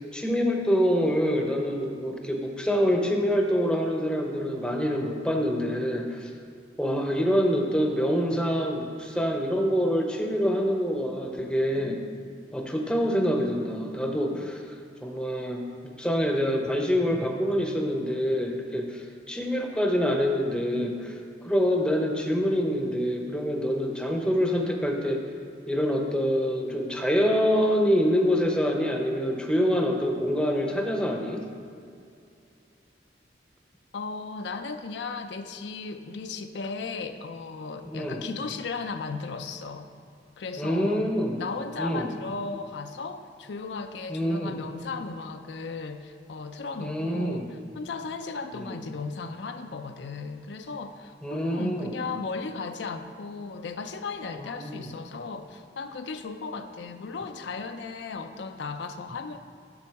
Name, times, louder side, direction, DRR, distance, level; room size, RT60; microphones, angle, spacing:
voice 1, 0.1-6.3 6.8-12.0 12.5-14.7 15.0-21.2 21.4-25.3 25.7-31.4 37.9-38.3 40.6-41.4 41.8-42.1 44.1-44.5 46.8-47.5 48.5-48.8 51.2-52.0 54.4-54.9, equal, 5° left, 2 dB, 0.6 m, -26 dB
voice 2, 33.9-39.9 40.4-41.1 41.4-59.4, left 4 dB, 75° left, 7 dB, 0.5 m, -36 dB
7.2 x 7.0 x 4.7 m, 2.4 s
head